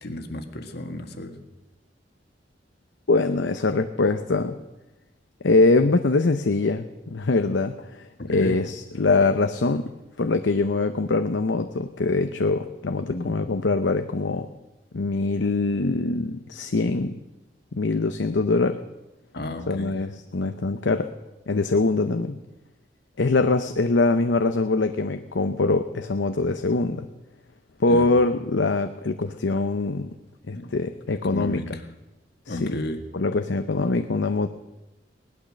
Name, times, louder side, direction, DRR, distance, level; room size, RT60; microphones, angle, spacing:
voice 1, 0.0-1.3 8.3-8.6 13.1-13.3 19.3-19.9 27.9-28.0 30.5-30.7 31.3-31.8 32.5-33.0, left 2 dB, 65° left, 6 dB, 1.7 m, -32 dB
voice 2, 3.1-4.6 5.4-9.9 10.2-14.5 14.9-17.2 17.7-18.8 19.7-21.1 21.5-22.4 23.2-27.1 27.8-30.1 30.5-31.6 32.5-32.8 33.1-34.5, left 3 dB, 80° left, 8 dB, 0.7 m, -23 dB
18.5 x 12.0 x 6.5 m, 1.0 s
head